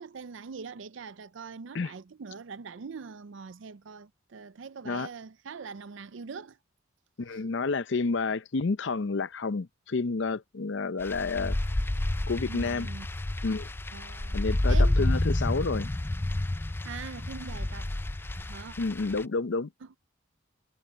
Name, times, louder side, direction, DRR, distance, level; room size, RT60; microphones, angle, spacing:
voice 1, 0.0-6.6 7.3-7.4 12.5-13.1 13.9-14.4 14.7-15.0 16.8-17.9 18.3-18.7 19.8-19.9, right 5 dB, 65° right, 0.5 m, -42 dB
voice 2, 7.2-11.6 12.3-12.9 13.4-13.7 14.3-15.9 18.8-19.7, left 4 dB, 60° left, 0.6 m, -30 dB
sound 1, 11.0-19.2, left 1 dB, 10° left, 0.3 m, -29 dB
head